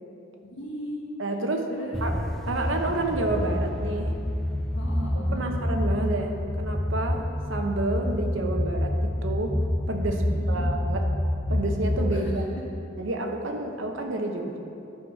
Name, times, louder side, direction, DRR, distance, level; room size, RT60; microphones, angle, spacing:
voice 1, 0.4-1.0 1.7-2.1 4.7-5.5 10.3-10.7 12.1-12.3, equal, 65° left, -3 dB, 1.5 m, -37 dB
voice 2, 1.2-1.7 2.0-2.1 2.5-4.1 5.3-7.2 7.5-9.6 9.9-11.1 11.5-12.4 13.0-14.6, right 2 dB, 70° right, 3 dB, 0.9 m, -29 dB
sound 1, 1.9-12.3, left 1 dB, ahead, 0.3 m, -28 dB
11.0 x 4.9 x 5.5 m, 2.7 s
head